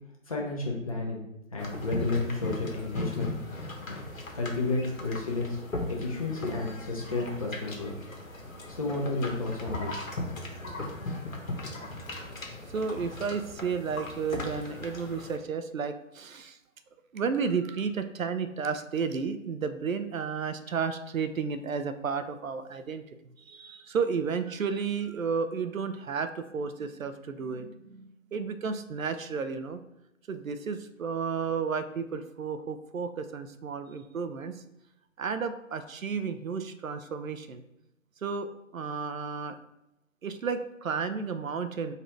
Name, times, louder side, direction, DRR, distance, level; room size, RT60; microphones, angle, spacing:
voice 1, 0.3-1.2 1.5-3.4 4.3-5.6 5.9-7.9 8.7-10.0 10.6-10.8, left 3 dB, 25° left, -2 dB, 0.7 m, -31 dB
sound 1, 1.6-15.4, left 2 dB, 80° left, 1.1 m, -38 dB
voice 2, 12.7-16.6 17.1-23.0 23.5-29.8 30.3-34.5 35.2-37.6 38.2-39.6 40.2-41.9, right 5 dB, 85° right, 10 dB, 0.6 m, -32 dB
4.1 x 2.6 x 4.6 m, 0.89 s
figure-of-eight pair, 150°, 40 cm